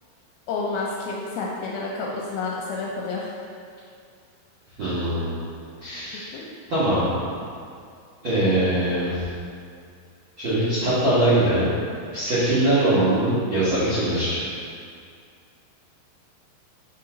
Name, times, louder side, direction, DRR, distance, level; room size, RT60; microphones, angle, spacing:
voice 1, 0.5-3.4 6.3-6.4, left 3 dB, 80° left, -3 dB, 2.3 m, -29 dB
voice 2, 4.8-5.3 5.8-6.3 6.7-7.2 8.2-9.2 10.4-11.7 12.1-14.4, right 1 dB, 70° right, -11 dB, 1.2 m, -22 dB
5.6 x 4.8 x 3.8 m, 2.3 s
omnidirectional pair, 4.7 m